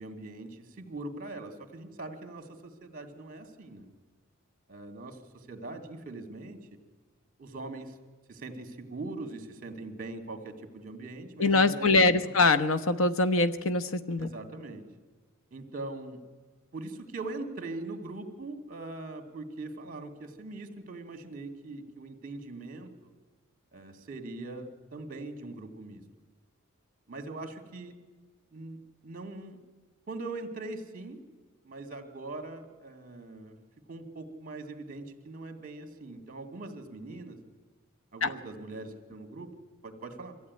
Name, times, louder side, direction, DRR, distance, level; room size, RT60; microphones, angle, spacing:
voice 1, 0.0-3.9 4.7-6.6 7.4-8.0 8.3-12.4 14.2-14.8 15.5-16.2 16.7-23.1 23.7-26.0 27.1-27.9 28.5-28.8 29.0-29.6 30.1-31.2 31.6-33.6 33.9-37.4 38.1-39.5 39.8-40.4, right 2 dB, 40° right, 6 dB, 2.3 m, -41 dB
voice 2, 11.4-14.3 38.2-38.3, left 3 dB, 70° left, 12 dB, 1.0 m, -23 dB
23.0 x 15.0 x 9.6 m, 1.4 s
head